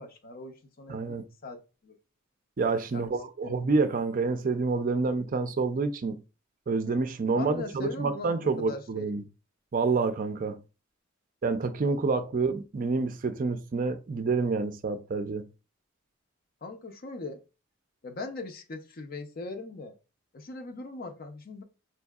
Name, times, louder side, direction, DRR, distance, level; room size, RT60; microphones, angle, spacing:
voice 1, 0.0-2.0 2.9-3.1 3.4-3.5 7.4-9.3 11.8-12.2 16.6-17.4 18.0-19.9 20.3-21.6, left 3 dB, 45° left, 0.6 m, -40 dB
voice 2, 0.9-1.2 2.6-6.2 6.7-9.2 9.7-10.6 11.4-15.5, right 4 dB, 40° right, 0.4 m, -28 dB
4.6 x 2.7 x 2.3 m
head